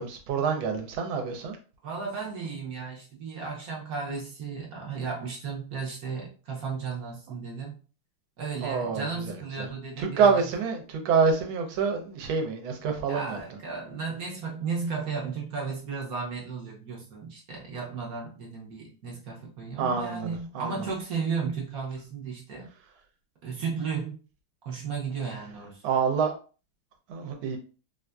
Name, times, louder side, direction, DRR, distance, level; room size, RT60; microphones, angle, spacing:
voice 1, 0.0-1.6 8.6-9.1 9.6-9.7 10.0-13.4 19.8-20.7 25.8-26.3 27.1-27.6, right 5 dB, 75° right, 4 dB, 1.5 m, -26 dB
voice 2, 1.8-7.8 8.4-10.5 13.1-22.7 23.4-24.2 24.6-25.8, right 5 dB, 55° right, -2 dB, 1.1 m, -34 dB
4.2 x 2.5 x 2.2 m, 0.36 s
omnidirectional pair, 2.3 m